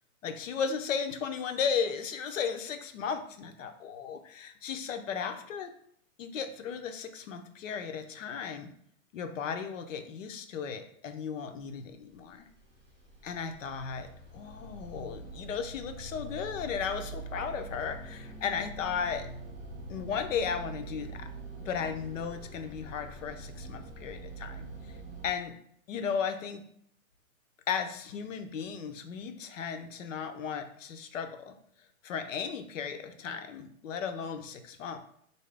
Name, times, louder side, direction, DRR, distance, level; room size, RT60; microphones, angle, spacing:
voice 1, 0.2-5.7 6.2-8.7 9.1-12.5 13.2-19.3 19.9-21.3 21.6-24.7 25.2-25.5 25.9-26.6 27.7-31.6 32.0-35.0, left 6 dB, 65° left, 7 dB, 0.7 m, -35 dB
sound 1, 12.1-25.3, right 2 dB, 5° left, 0.5 m, -44 dB
4.4 x 2.7 x 3.2 m, 0.66 s
hypercardioid pair, 170°, 41 cm